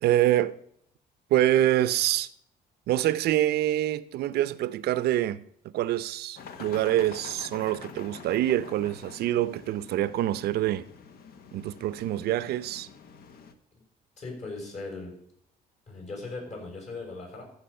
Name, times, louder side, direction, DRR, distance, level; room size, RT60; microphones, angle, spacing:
voice 1, 0.0-0.5 1.3-2.3 2.9-5.4 5.7-10.8 11.5-12.9, right 13 dB, 70° right, 0.6 m, -25 dB
sound 1, 6.4-13.5, left 6 dB, 65° left, 1.1 m, -46 dB
voice 2, 14.2-15.1 15.9-17.4, left 3 dB, 45° left, 6.2 m, -38 dB
14.5 x 7.2 x 5.6 m
cardioid pair, 110°, 17 cm